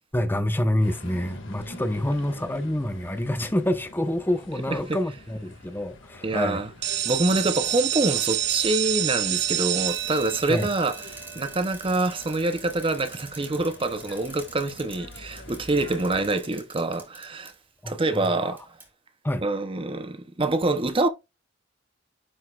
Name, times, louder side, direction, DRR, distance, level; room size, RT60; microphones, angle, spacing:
voice 1, 0.1-6.6 10.5-10.7 17.8-18.5 19.2-19.4, left 1 dB, 10° left, 0.9 m, -27 dB
sound 1, 0.8-16.3, left 2 dB, 75° left, 2.0 m, -47 dB
voice 2, 6.2-6.7 7.0-17.5 17.9-18.8 19.4-21.1, right 2 dB, 30° right, 0.7 m, -26 dB
sound 2, 6.8-12.5, right 12 dB, 60° right, 0.9 m, -28 dB
Bicycle, 9.9-17.5 18.2-18.3 18.6-18.9, right 2 dB, 10° right, 3.4 m, -46 dB
11.0 x 5.2 x 2.4 m
head